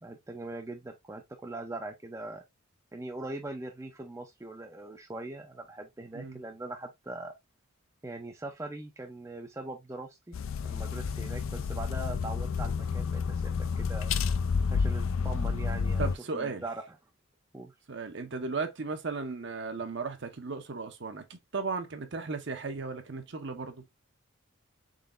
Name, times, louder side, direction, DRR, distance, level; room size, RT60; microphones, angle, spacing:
voice 1, 0.0-2.4 2.9-7.3 8.0-10.4 10.6-14.1 14.7-16.8 17.5-17.7, right 2 dB, 15° right, 0.4 m, -41 dB
sound 1, 10.3-16.2, left 5 dB, 70° left, 0.4 m, -30 dB
voice 2, 16.0-16.6 17.9-23.8, right 4 dB, 55° right, 0.7 m, -36 dB
3.9 x 3.8 x 2.5 m
head